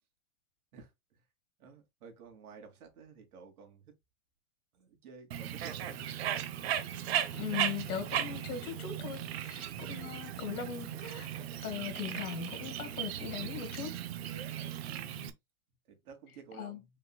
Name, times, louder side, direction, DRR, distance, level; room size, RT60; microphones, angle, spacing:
voice 1, 1.6-3.9 4.7-6.2 14.4-15.0 15.9-16.8, right 5 dB, 90° right, 2.6 m, -53 dB
Bird, 5.3-15.3, right 10 dB, 45° right, 0.8 m, -37 dB
voice 2, 7.3-11.3 11.6-14.0 16.5-16.8, left 8 dB, 85° left, 2.1 m, -39 dB
5.5 x 3.9 x 2.3 m
supercardioid pair, 175°, 43 cm